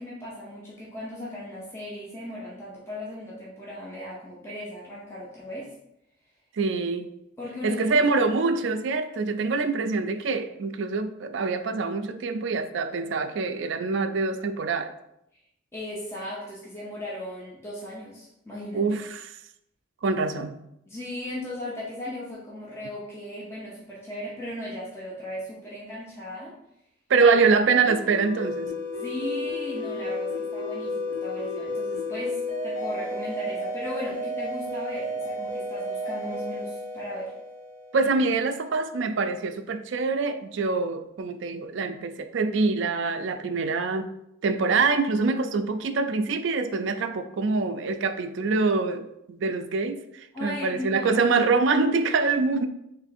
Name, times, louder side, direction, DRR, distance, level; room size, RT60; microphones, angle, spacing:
voice 1, 0.0-5.7 7.4-8.1 15.3-15.4 15.7-19.0 20.9-26.6 28.9-37.3 50.3-51.1, left 1 dB, 15° left, -6 dB, 0.8 m, -37 dB
voice 2, 6.5-7.1 7.6-14.9 18.7-19.3 20.0-20.6 27.1-28.7 37.9-44.1 44.4-52.7, right 4 dB, 65° right, 8 dB, 0.4 m, -25 dB
sound 1, 27.8-38.2, left 1 dB, 60° left, 1.7 m, -32 dB
3.5 x 3.1 x 4.2 m, 0.80 s
head